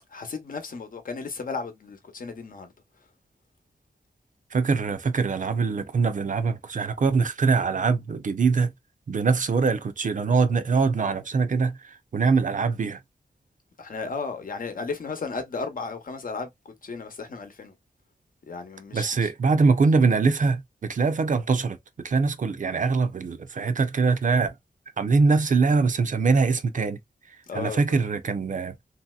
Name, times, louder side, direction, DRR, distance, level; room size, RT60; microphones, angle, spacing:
voice 1, 0.1-2.7 13.8-17.7 18.5-19.3 27.5-28.0, left 4 dB, 60° left, 0.9 m, -34 dB
voice 2, 4.5-8.7 9.1-11.8 12.1-13.0 18.9-24.5 25.0-27.0 27.5-28.7, right 4 dB, 55° right, 0.6 m, -23 dB
3.1 x 2.8 x 2.3 m
wide cardioid pair, 90°, 16 cm